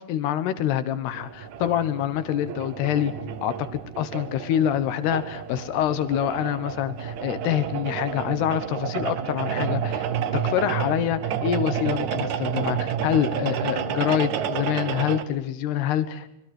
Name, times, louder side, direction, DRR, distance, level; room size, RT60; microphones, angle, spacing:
voice 1, 0.0-3.1 3.4-10.1 10.3-16.4, left 10 dB, 75° left, 12 dB, 3.2 m, -26 dB
sound 1, 1.1-15.2, right 8 dB, 70° right, 1.7 m, -30 dB
25.5 x 23.0 x 6.5 m, 0.79 s
omnidirectional pair, 4.8 m